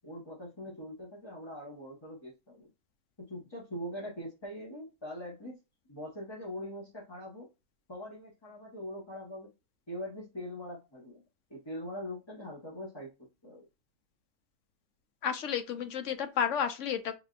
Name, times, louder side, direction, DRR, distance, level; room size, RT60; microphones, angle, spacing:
voice 1, 0.0-2.7 3.2-5.6 5.9-7.5 7.9-9.5 9.9-11.2 11.5-13.7, equal, 20° left, 1.3 m, -42 dB
voice 2, 15.2-17.2, left 8 dB, 70° left, 1.0 m, -31 dB
5.3 x 2.8 x 2.5 m
omnidirectional pair, 1.4 m